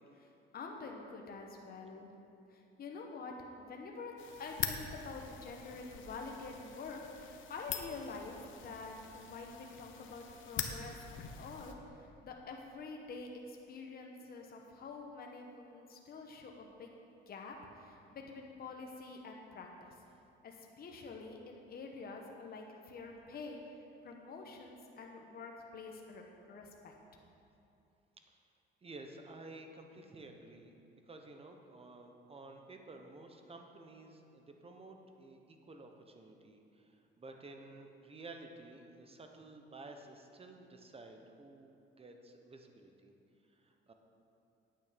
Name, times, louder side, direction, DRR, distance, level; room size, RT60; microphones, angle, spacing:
voice 1, 0.5-2.1 2.5-4.1 4.4-11.0 11.3-16.9 17.3-19.9 20.4-23.6 24.0-26.9, left 4 dB, 45° left, 1 dB, 1.2 m, -47 dB
sound 1, 4.2-11.7, left 8 dB, 70° left, 1.0 m, -44 dB
voice 2, 28.8-43.1 43.5-43.9, right 2 dB, 30° right, 4 dB, 1.1 m, -53 dB
9.0 x 9.0 x 5.2 m, 2.7 s
cardioid pair, 95°, 21 cm